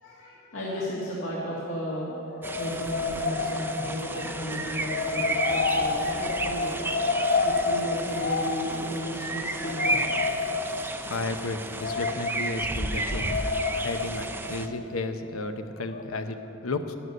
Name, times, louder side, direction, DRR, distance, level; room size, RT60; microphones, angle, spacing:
voice 1, 0.0-2.2 2.6-6.9 7.4-10.1 16.4-16.5, equal, 75° left, -6 dB, 1.9 m, -34 dB
sound 1, 1.9-15.5 15.9-16.0, left 4 dB, 45° left, 0.7 m, -30 dB
sound 2, 2.4-14.7, right 2 dB, 10° right, 0.4 m, -33 dB
voice 2, 11.1-13.4 13.7-16.4 16.6-16.9, left 3 dB, 90° left, 8 dB, 0.8 m, -33 dB
13.0 x 11.0 x 5.4 m, 2.8 s
head